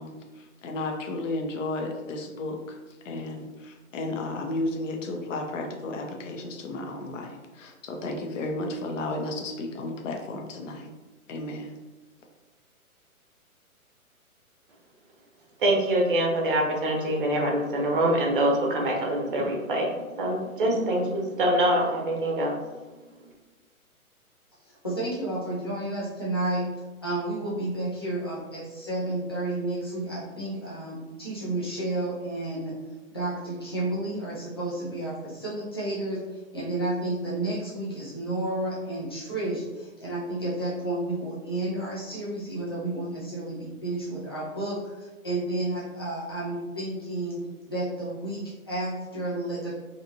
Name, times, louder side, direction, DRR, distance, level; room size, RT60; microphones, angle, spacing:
voice 1, 0.0-10.9 11.3-11.8, left 2 dB, 60° left, 3 dB, 0.6 m, -33 dB
voice 2, 15.6-22.6, right 1 dB, 40° right, 0 dB, 0.6 m, -25 dB
voice 3, 24.6-26.7 27.0-32.7 33.1-36.2 36.5-47.4 47.6-49.7, right 2 dB, 20° left, -8 dB, 0.4 m, -31 dB
2.6 x 2.4 x 2.7 m, 1.2 s
figure-of-eight pair, 135°, 44 cm